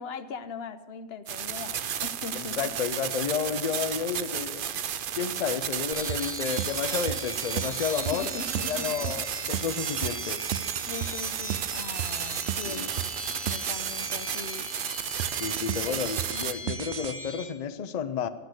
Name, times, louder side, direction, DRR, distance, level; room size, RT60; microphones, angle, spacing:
voice 1, 0.0-2.7 8.0-9.1 10.9-14.7 15.9-16.0, left 5 dB, 75° left, 12 dB, 1.0 m, -40 dB
sound 1, 1.3-16.5, right 9 dB, 60° right, 0.7 m, -33 dB
voice 2, 2.3-4.8 5.2-8.3 8.7-10.4 12.7-12.9 15.4-18.3, left 7 dB, 45° left, 12 dB, 0.6 m, -31 dB
sound 2, 5.9-17.4, equal, 15° right, 1.4 m, -39 dB
sound 3, 6.1-14.1 15.2-17.1, right 11 dB, 90° right, 0.8 m, -34 dB
11.5 x 9.0 x 8.0 m, 1.3 s
omnidirectional pair, 1.1 m